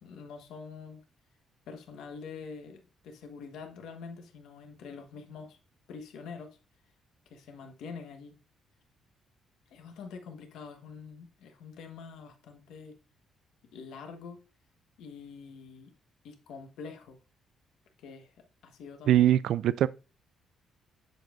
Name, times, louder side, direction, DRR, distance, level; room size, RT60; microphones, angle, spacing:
voice 1, 0.0-1.0 1.7-5.6 5.9-6.6 7.3-8.3 9.7-12.9 13.6-14.4 15.0-15.9 16.2-17.2 18.0-18.3 18.6-19.2, left 5 dB, 85° left, 1.3 m, -45 dB
voice 2, 19.1-19.9, right 12 dB, 75° right, 0.3 m, -22 dB
7.6 x 7.3 x 2.5 m
cardioid pair, 90°, 0 cm